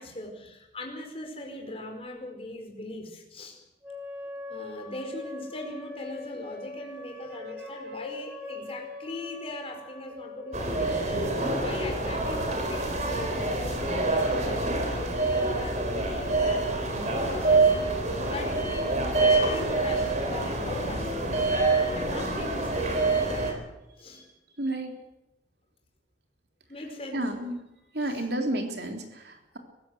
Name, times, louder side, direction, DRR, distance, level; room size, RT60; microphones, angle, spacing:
voice 1, 0.0-3.6 4.5-14.6 14.9-16.7 17.3-17.7 18.1-21.5 21.9-23.5 24.0-24.3 26.7-27.3 28.0-28.2, left 1 dB, 30° left, 2 dB, 4.8 m, -40 dB
sound 1, 3.8-12.8, left 2 dB, 10° right, 5.5 m, -42 dB
voice 2, 7.6-7.9 24.1-24.2 24.6-25.0 27.1-27.6 27.9-29.6, right 1 dB, 60° right, 4 dB, 3.5 m, -31 dB
sound 2, 10.5-23.5, right 2 dB, 40° right, 4.1 m, -26 dB
24.5 x 15.5 x 8.0 m, 0.96 s
head